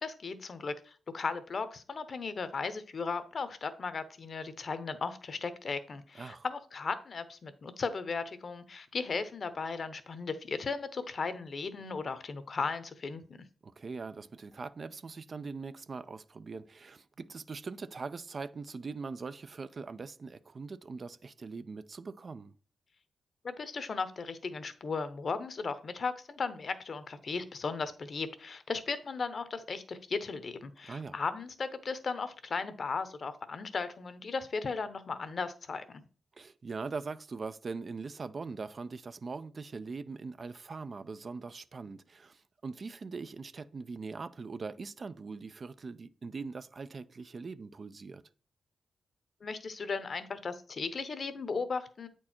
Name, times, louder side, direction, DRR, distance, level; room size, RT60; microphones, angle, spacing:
voice 1, 0.0-13.2 23.4-36.0 49.4-52.1, left 4 dB, 55° left, 0.8 m, -36 dB
voice 2, 13.6-22.5 30.9-31.2 36.4-48.2, right 4 dB, 45° right, 0.4 m, -41 dB
8.5 x 4.5 x 4.4 m
cardioid pair, 85°, 0 cm